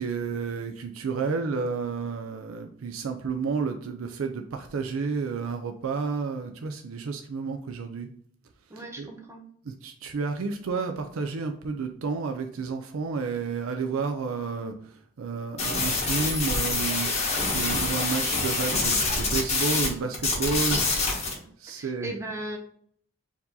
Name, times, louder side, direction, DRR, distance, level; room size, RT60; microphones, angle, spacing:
voice 1, 0.0-8.1 8.8-9.1 9.6-17.3 17.5-20.8 21.6-22.1, right 4 dB, 70° right, 5 dB, 0.4 m, -31 dB
voice 2, 8.7-9.4 21.4-22.6, right 1 dB, 15° right, 1 dB, 0.6 m, -38 dB
sound 1, 15.6-19.9 20.1-21.3, left 3 dB, 30° left, 1.2 m, -26 dB
4.6 x 2.8 x 3.7 m, 0.62 s
head